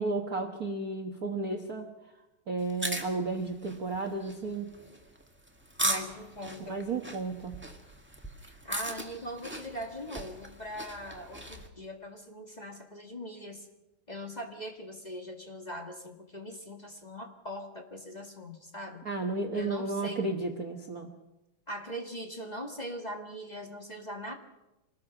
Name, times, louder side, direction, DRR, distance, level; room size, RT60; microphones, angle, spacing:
voice 1, 0.0-1.9 2.5-4.7 6.7-7.6 19.0-21.1, right 3 dB, 75° right, 3 dB, 0.8 m, -33 dB
sound 1, 2.6-11.7, right 1 dB, 5° right, 0.8 m, -38 dB
voice 2, 5.8-6.8 8.4-13.7 14.1-19.1 19.5-20.3 21.7-24.3, equal, 20° left, 2 dB, 1.3 m, -41 dB
26.0 x 20.0 x 6.0 m, 1.0 s
omnidirectional pair, 3.8 m